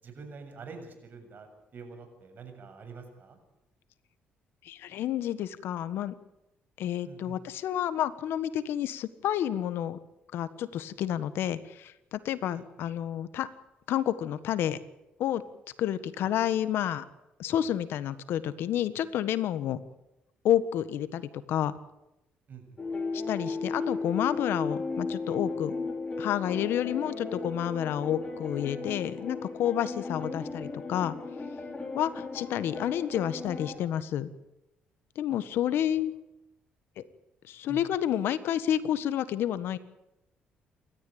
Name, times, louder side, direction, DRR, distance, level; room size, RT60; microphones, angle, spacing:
voice 1, 0.0-3.4 7.0-7.4 12.4-12.6 16.1-16.3 22.5-22.8 30.2-30.3 37.7-37.8, right 4 dB, 55° right, 6 dB, 7.0 m, -46 dB
voice 2, 4.6-6.1 6.8-10.0 10.3-13.5 13.9-14.8 15.2-15.4 15.8-17.0 17.4-19.8 20.4-21.7 23.1-25.7 26.2-31.1 31.9-34.3 35.1-36.1 37.0-37.1 37.5-39.8, left 11 dB, 75° left, 14 dB, 1.5 m, -30 dB
sound 1, 22.8-33.8, left 3 dB, 30° left, 5.9 m, -35 dB
28.5 x 13.5 x 8.8 m, 0.92 s
supercardioid pair, 70°, 4 cm